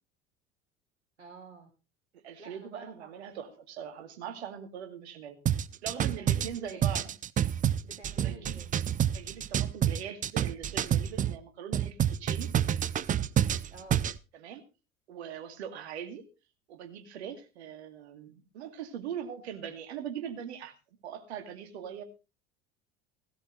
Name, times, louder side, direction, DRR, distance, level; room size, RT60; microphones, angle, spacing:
voice 1, 1.2-1.7 2.4-3.6 6.2-6.8 7.8-8.7 13.7-14.0, right 3 dB, 85° right, 3 dB, 2.0 m, -50 dB
voice 2, 2.1-5.4 5.8-7.1 8.2-8.6 9.1-12.5 14.3-14.6 15.1-16.2 16.7-20.7 21.0-22.0, right 8 dB, 65° right, 7 dB, 2.3 m, -41 dB
sound 1, 5.5-11.4 11.7-14.2, right 10 dB, 25° right, 0.6 m, -28 dB
16.5 x 13.0 x 3.2 m, 0.31 s
figure-of-eight pair, 70°, 35 cm